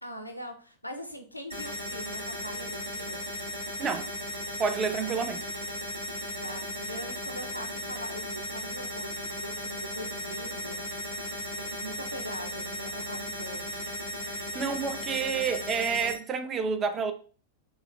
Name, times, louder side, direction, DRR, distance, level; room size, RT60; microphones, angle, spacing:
voice 1, 0.0-3.3 6.4-10.8 11.6-13.9, equal, 85° left, 0.4 m, -42 dB
sound 1, 1.5-16.1, equal, 80° right, 0.9 m, -36 dB
voice 2, 4.6-5.4 14.3-17.1, right 5 dB, 25° right, 0.3 m, -29 dB
4.4 x 2.2 x 2.2 m
figure-of-eight pair, 90°, 0 cm